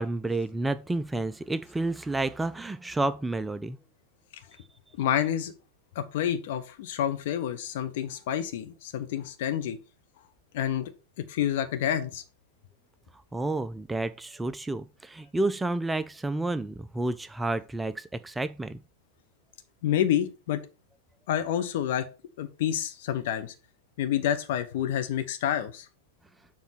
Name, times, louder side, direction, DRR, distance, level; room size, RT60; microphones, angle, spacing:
voice 1, 0.0-3.8 13.3-18.8, right 2 dB, 10° right, 0.3 m, -30 dB
voice 2, 5.0-5.5 5.9-9.8 10.5-10.9 11.2-12.2 19.8-20.6 21.3-22.1 22.4-23.5 24.0-25.9, left 10 dB, 55° left, 1.0 m, -28 dB
7.3 x 3.8 x 5.8 m
figure-of-eight pair, 90°, 0 cm